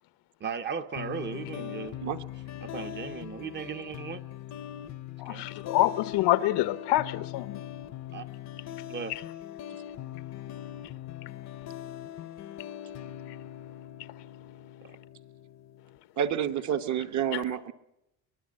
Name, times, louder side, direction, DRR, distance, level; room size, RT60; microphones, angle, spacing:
voice 1, 0.4-2.0 2.6-4.2 5.3-5.4 8.1-8.3 8.9-9.1 14.8-15.0, right 6 dB, 25° right, 0.7 m, -36 dB
sound 1, 1.0-16.0, left 12 dB, 45° left, 0.7 m, -41 dB
voice 2, 5.2-7.6 17.3-17.4, left 15 dB, 80° left, 1.1 m, -26 dB
voice 3, 16.2-17.7, right 9 dB, 45° right, 1.0 m, -29 dB
24.0 x 20.0 x 7.5 m
cardioid pair, 165°, 40 cm